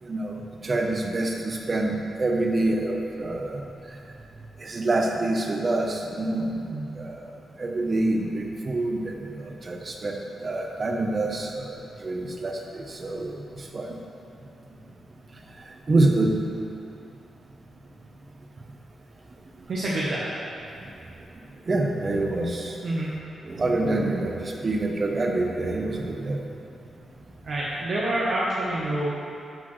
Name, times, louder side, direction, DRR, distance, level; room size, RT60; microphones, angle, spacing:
voice 1, 0.0-3.6 4.6-6.6 7.0-7.3 7.6-14.0 15.9-16.4 20.8-20.9 21.7-22.8 23.4-26.4, right 2 dB, 30° right, 2 dB, 0.7 m, -26 dB
voice 2, 19.7-20.3 22.8-23.2 27.4-29.1, right 1 dB, 55° right, -7 dB, 0.9 m, -27 dB
12.0 x 4.4 x 3.1 m, 2.6 s
wide cardioid pair, 145°, 0 cm